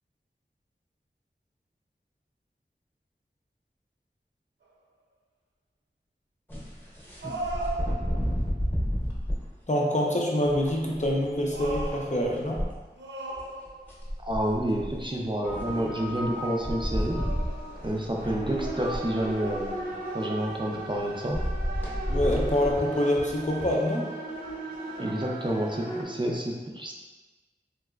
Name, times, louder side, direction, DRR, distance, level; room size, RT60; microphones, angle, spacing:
sound 1, 4.7-4.8 7.2-8.4 11.0-12.5 13.0-14.1 16.3-16.6 17.1-17.9 18.4-19.4, right 2 dB, 85° right, 0.4 m, -38 dB
sound 2, 6.5-9.5 10.4-12.7 13.4-13.5 13.6-15.1 16.2-16.3 16.6-19.8 21.3-23.7, equal, 10° left, 0.9 m, -31 dB
voice 1, 9.7-12.7 22.1-24.1, left 1 dB, 40° left, -2 dB, 0.5 m, -26 dB
voice 2, 14.2-17.2 17.8-21.4 25.0-26.9, right 1 dB, 25° right, -1 dB, 0.4 m, -29 dB
sound 3, 15.4-26.0, right 2 dB, 55° right, 0.8 m, -37 dB
3.2 x 2.8 x 2.3 m, 1.2 s
wide cardioid pair, 45°, 18 cm